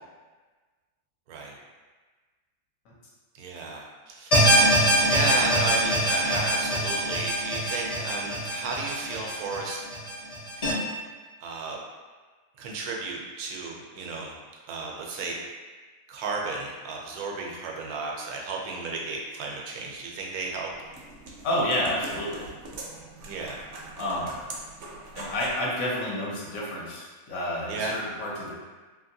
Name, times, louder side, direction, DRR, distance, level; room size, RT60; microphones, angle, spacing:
voice 1, 3.4-4.4 5.1-9.8 11.4-11.8 12.6-14.4 14.7-15.3 16.1-20.7 23.3-23.6 27.7-27.9, right 3 dB, 85° right, -1 dB, 1.1 m, -33 dB
sound 1, 4.3-10.7, right 1 dB, 50° left, 0.4 m, -24 dB
voice 2, 5.0-5.4 21.4-22.5 24.0-24.4 25.1-28.6, left 1 dB, 70° left, -4 dB, 1.1 m, -30 dB
sound 2, 20.4-25.6, right 2 dB, 65° right, 0.8 m, -42 dB
2.8 x 2.8 x 2.6 m, 1.3 s
omnidirectional pair, 1.5 m